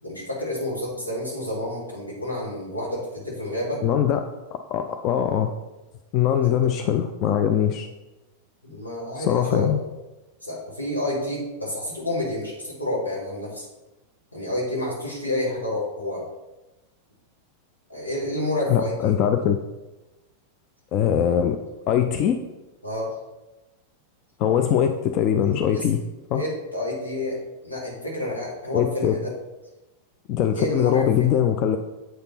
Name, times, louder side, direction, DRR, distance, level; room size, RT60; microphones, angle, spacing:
voice 1, 0.0-3.8 6.4-6.5 8.6-9.7 10.4-13.7 14.3-16.2 17.9-19.1 22.8-23.1 25.7-25.9 26.3-27.4 27.6-29.3 30.5-31.3, left 1 dB, 85° left, -5 dB, 2.7 m, -29 dB
voice 2, 3.8-4.3 4.7-5.5 6.1-7.9 9.2-9.8 18.7-19.6 20.9-21.6 21.9-22.4 24.4-26.0 26.3-26.4 28.7-29.2 30.3-31.8, left 9 dB, 40° left, 7 dB, 0.4 m, -21 dB
7.9 x 5.2 x 4.2 m, 1.0 s
figure-of-eight pair, 90°, 0 cm